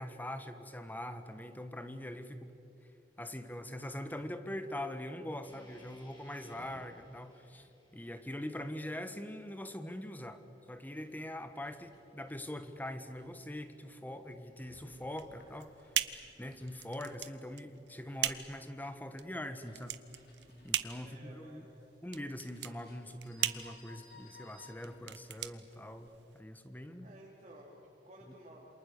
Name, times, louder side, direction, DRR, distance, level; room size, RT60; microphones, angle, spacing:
voice 1, 0.0-2.5 3.2-10.4 10.7-15.7 16.4-20.0 20.6-21.7 22.0-27.1 28.3-28.4, left 1 dB, 10° left, 9 dB, 1.3 m, -43 dB
sound 1, 5.4-9.6, left 1 dB, 30° left, 7.3 m, -60 dB
voice 2, 6.4-6.8 21.0-22.0 27.0-28.6, right 1 dB, 40° right, -4 dB, 3.3 m, -55 dB
sound 2, 10.7-26.1, left 3 dB, 60° left, 6.0 m, -63 dB
sound 3, 15.1-26.4, right 11 dB, 90° right, 1.0 m, -39 dB
28.0 x 27.0 x 6.9 m, 2.9 s
head